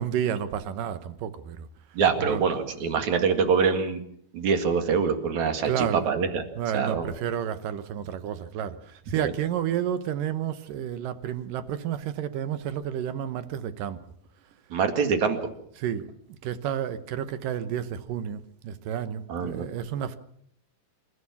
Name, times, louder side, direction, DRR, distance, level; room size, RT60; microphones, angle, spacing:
voice 1, 0.0-1.7 2.2-2.4 5.7-6.1 6.6-14.0 15.8-16.1 16.4-20.2, right 9 dB, 70° right, 2.6 m, -31 dB
voice 2, 1.9-4.0 4.3-6.4 6.7-7.1 9.2-9.3 14.7-15.5 19.3-19.7, right 6 dB, 55° right, 3.1 m, -25 dB
27.5 x 14.5 x 7.2 m
omnidirectional pair, 4.3 m